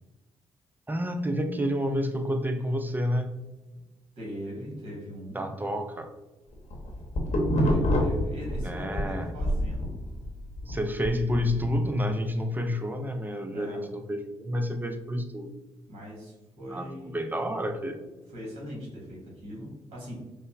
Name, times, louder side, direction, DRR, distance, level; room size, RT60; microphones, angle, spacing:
voice 1, 0.9-3.4 5.3-6.1 8.6-9.3 10.6-15.5 16.7-18.0, equal, 15° right, 7 dB, 0.5 m, -29 dB
voice 2, 4.2-5.5 7.5-10.0 13.5-13.8 15.9-17.2 18.3-20.1, equal, 50° right, -4 dB, 1.4 m, -40 dB
sound 1, 6.5-9.1 9.4-11.8, equal, 55° left, 0.9 m, -27 dB
5.1 x 2.1 x 2.3 m, 1.1 s
hypercardioid pair, 45°, 14 cm